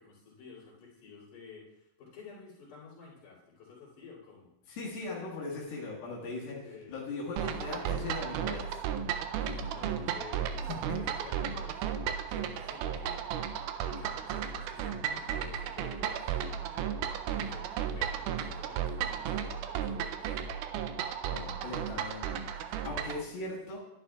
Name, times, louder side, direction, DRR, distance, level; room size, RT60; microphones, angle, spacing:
voice 1, 0.0-4.5 6.3-7.0 9.6-11.8 12.3-13.2 13.8-16.2 17.3-20.4 22.6-23.3, left 5 dB, 60° left, -7 dB, 3.9 m, -51 dB
voice 2, 4.7-6.6 6.9-8.7 9.4-10.2 21.3-22.4 22.8-23.8, left 3 dB, 90° left, -5 dB, 3.4 m, -39 dB
sound 1, 7.4-23.2, right 8 dB, 85° right, 1.7 m, -34 dB
11.0 x 10.5 x 2.3 m, 0.85 s
omnidirectional pair, 4.1 m